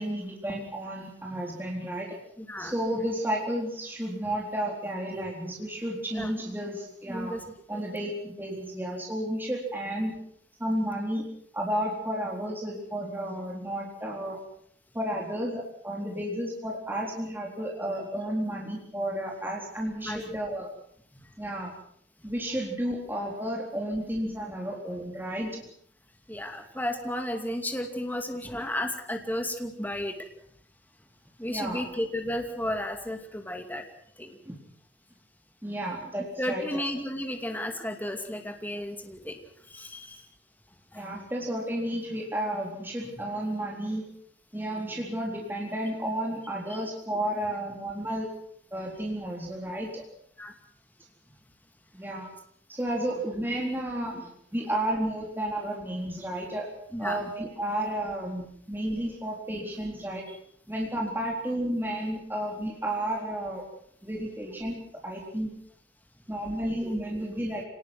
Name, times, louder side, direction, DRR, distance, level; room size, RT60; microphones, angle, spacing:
voice 1, 0.0-2.1 2.6-7.4 7.7-10.1 10.6-11.3 11.5-14.4 14.9-20.7 21.4-21.7 22.2-25.6 31.5-31.8 34.5-34.6 35.6-36.8 40.9-44.0 44.5-48.3 48.7-50.0 51.9-52.3 52.7-56.7 57.0-60.2 60.7-63.6 64.0-65.5 66.3-67.7, right 1 dB, 10° right, -2 dB, 3.9 m, -32 dB
voice 2, 2.4-2.7 6.1-6.3 7.1-7.4 7.7-7.8 20.0-20.2 25.6-25.7 26.3-30.1 31.4-33.9 34.2-34.4 36.4-39.4 39.7-40.2 40.9-41.1 50.4-50.5 54.1-54.2 56.9-57.2 66.8-66.9, left 1 dB, 10° left, 4 dB, 2.6 m, -33 dB
27.0 x 19.0 x 6.1 m, 0.66 s
head